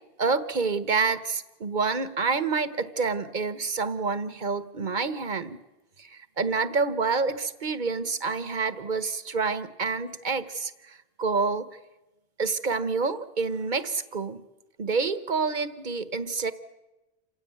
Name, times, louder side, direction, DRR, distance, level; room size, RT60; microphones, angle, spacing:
voice 1, 0.2-5.6 6.0-11.7 12.4-14.4 14.8-16.5, right 4 dB, 50° right, 13 dB, 1.3 m, -28 dB
28.0 x 16.0 x 9.3 m, 1.0 s
omnidirectional pair, 1.1 m